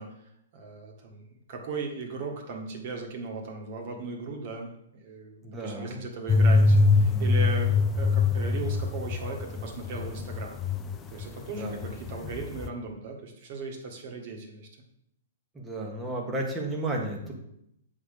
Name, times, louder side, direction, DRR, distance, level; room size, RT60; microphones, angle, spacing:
voice 1, 0.0-4.7 5.0-10.6 11.1-14.7, right 3 dB, 40° right, 2 dB, 1.7 m, -37 dB
voice 2, 5.4-6.0 11.6-11.8 15.6-17.3, right 2 dB, 10° right, 0 dB, 1.3 m, -33 dB
sound 1, 6.3-11.3 11.6-12.7, left 3 dB, 15° left, 0.5 m, -23 dB
7.8 x 4.0 x 6.7 m, 0.78 s
hypercardioid pair, 160°, 0 cm